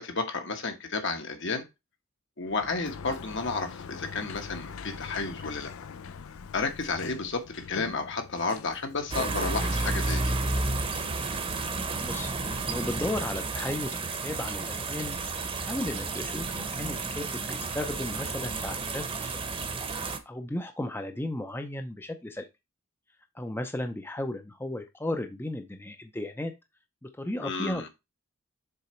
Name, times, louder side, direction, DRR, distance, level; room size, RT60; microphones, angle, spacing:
voice 1, 0.0-1.7 2.4-5.7 6.5-10.3 27.4-27.9, left 3 dB, 60° left, 6 dB, 1.3 m, -32 dB
Sliding door, 2.4-9.6, left 5 dB, 85° left, 0.5 m, -43 dB
sound 1, 9.1-20.2, right 3 dB, 25° right, 0.9 m, -31 dB
voice 2, 12.0-12.3 12.7-15.2 15.6-19.3 20.3-22.5 23.3-26.5 27.0-27.9, left 1 dB, 10° left, 6 dB, 0.5 m, -35 dB
6.9 x 3.9 x 4.4 m, 0.23 s
head